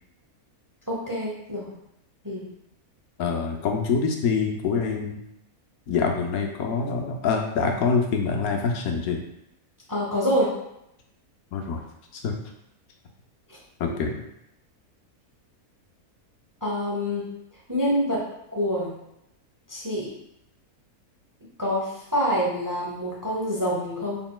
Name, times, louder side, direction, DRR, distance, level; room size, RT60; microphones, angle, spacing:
voice 1, 0.9-1.7 2.2-2.5 9.9-10.5 16.6-17.3 17.7-18.2 18.5-18.9 19.7-20.1 21.6-24.2, equal, 20° right, -5 dB, 0.6 m, -26 dB
voice 2, 3.2-5.2 5.9-9.2 11.5-11.8 12.1-12.4 13.8-14.2, left 5 dB, 85° left, 2 dB, 1.1 m, -25 dB
3.9 x 3.8 x 2.3 m, 0.81 s
omnidirectional pair, 1.5 m